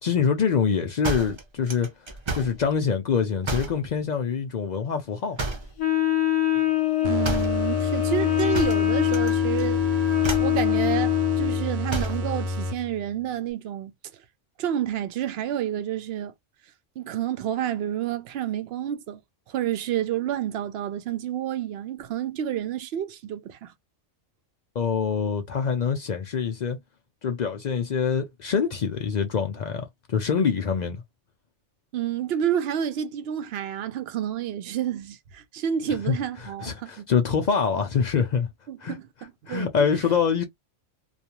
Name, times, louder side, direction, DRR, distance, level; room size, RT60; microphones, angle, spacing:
voice 1, 0.0-1.9 2.3-5.4 24.8-26.8 27.2-31.0 35.9-36.2 36.4-38.5 38.8-39.0 39.5-40.4, left 6 dB, 65° left, 0.4 m, -25 dB
sound 1, 1.0-2.6 3.4-3.8 5.4-5.8 7.2-7.6 8.5-9.3 9.6-9.9 10.2-10.6 11.9-12.3, right 2 dB, 30° right, 0.6 m, -31 dB
Wind instrument woodwind instrument, 5.8-11.6, left 14 dB, 85° left, 1.1 m, -24 dB
voice 2, 7.0-9.8 10.4-13.9 14.6-16.3 17.0-19.2 19.5-23.7 31.9-37.1 38.7-39.7, right 10 dB, 65° right, 0.7 m, -29 dB
sound 2, 7.0-13.1, left 2 dB, 90° right, 1.0 m, -30 dB
2.4 x 2.3 x 2.8 m
omnidirectional pair, 1.2 m